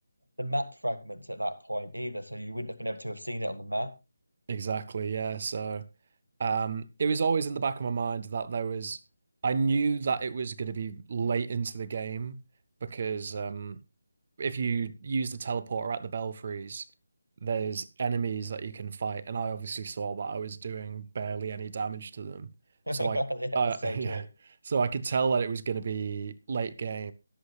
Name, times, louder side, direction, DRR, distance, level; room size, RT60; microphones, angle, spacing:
voice 1, 0.4-3.9 22.9-24.3, equal, 80° right, 1.8 m, -33 dB
voice 2, 4.5-5.8 6.4-9.0 9.4-12.4 12.8-13.8 14.4-16.9 17.4-22.5 23.0-23.2 23.5-24.2 24.6-27.1, right 5 dB, 40° right, 0.7 m, -31 dB
22.5 x 7.9 x 2.4 m
figure-of-eight pair, 155°, 0 cm